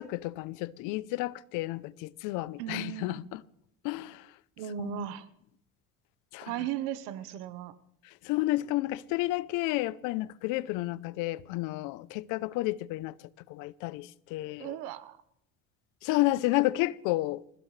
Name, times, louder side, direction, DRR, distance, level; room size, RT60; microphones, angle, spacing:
voice 1, 0.0-3.4 3.8-4.3 4.8-5.1 6.3-6.5 8.2-13.1 13.5-14.7 16.0-17.4, left 18 dB, 75° left, 0.8 m, -31 dB
voice 2, 2.6-3.2 4.6-5.3 6.5-7.7 14.6-15.2, right 11 dB, 80° right, 1.2 m, -36 dB
26.5 x 15.5 x 3.3 m
supercardioid pair, 95°, 31 cm